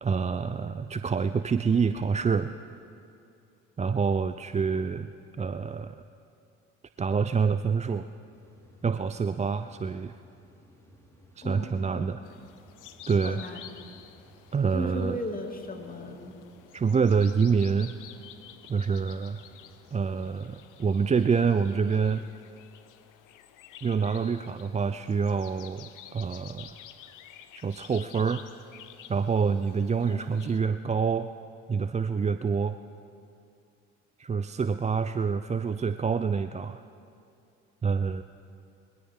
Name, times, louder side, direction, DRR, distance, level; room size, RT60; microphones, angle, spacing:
voice 1, 0.0-2.5 3.8-5.1 5.4-6.0 7.0-8.1 8.8-10.1 11.4-12.2 13.1-13.4 14.5-15.2 16.7-17.9 18.7-19.4 19.9-22.2 23.8-26.7 27.6-28.4 29.1-31.3 31.7-32.8 34.2-36.8 37.8-38.2, right 5 dB, 20° right, 11 dB, 0.4 m, -27 dB
sound 1, 8.3-20.6, equal, 10° left, 4.3 m, -57 dB
voice 2, 11.4-12.5 13.2-13.6 14.7-16.4 30.0-30.6, left 1 dB, 25° left, 3 dB, 2.4 m, -37 dB
sound 2, 12.2-30.6, left 11 dB, 65° left, 1.0 m, -51 dB
21.5 x 17.0 x 3.7 m, 2.6 s
hypercardioid pair, 50°, 34 cm